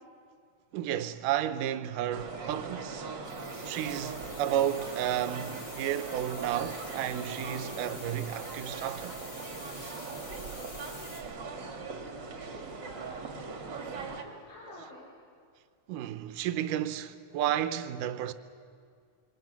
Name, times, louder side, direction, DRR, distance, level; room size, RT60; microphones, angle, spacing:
voice 1, 0.7-3.1 3.7-9.2 14.7-14.8 15.9-18.3, right 11 dB, 85° right, 2.4 m, -32 dB
sound 1, 2.1-14.2, right 4 dB, 40° right, 2.0 m, -40 dB
sound 2, 3.3-11.2, left 3 dB, 60° left, 4.1 m, -48 dB
voice 2, 11.3-13.1 13.3-15.2, left 2 dB, 75° left, 5.1 m, -51 dB
26.5 x 23.0 x 6.0 m
omnidirectional pair, 3.7 m